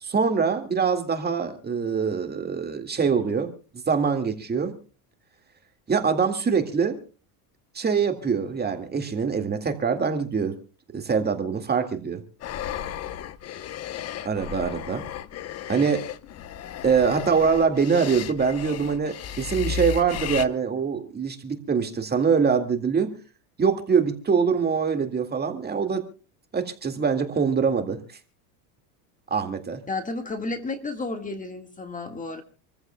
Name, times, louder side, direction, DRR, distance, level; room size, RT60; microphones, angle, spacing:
voice 1, 0.0-3.5 3.9-4.7 5.9-7.0 7.7-10.5 10.9-12.2 14.3-15.0 15.7-16.0 16.8-23.1 23.6-26.0 26.5-28.0 29.3-29.8, right 6 dB, 20° right, 6 dB, 1.9 m, -24 dB
sound 1, 12.4-20.5, left 8 dB, 35° left, 0.9 m, -34 dB
voice 2, 29.9-32.4, left 3 dB, 15° left, 6 dB, 1.7 m, -32 dB
27.5 x 14.5 x 2.2 m, 0.36 s
supercardioid pair, 120°, 45 cm